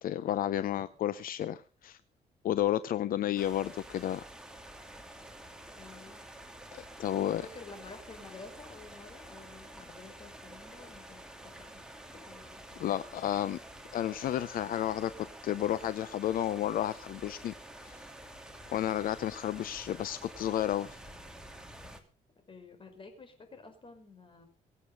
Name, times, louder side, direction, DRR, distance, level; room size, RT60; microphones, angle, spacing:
voice 1, 0.0-2.0 2.4-4.2 6.7-7.4 12.8-13.6 13.9-17.5 17.8-18.0 18.7-21.0, left 11 dB, 70° left, 15 dB, 0.7 m, -32 dB
voice 2, 3.0-3.4 5.7-6.2 7.1-13.5 22.5-24.5, left 4 dB, 35° left, 7 dB, 5.2 m, -51 dB
sound 1, 3.4-22.0, right 1 dB, 5° right, 2.8 m, -49 dB
23.5 x 8.4 x 5.4 m, 0.36 s
cardioid pair, 110°, 15 cm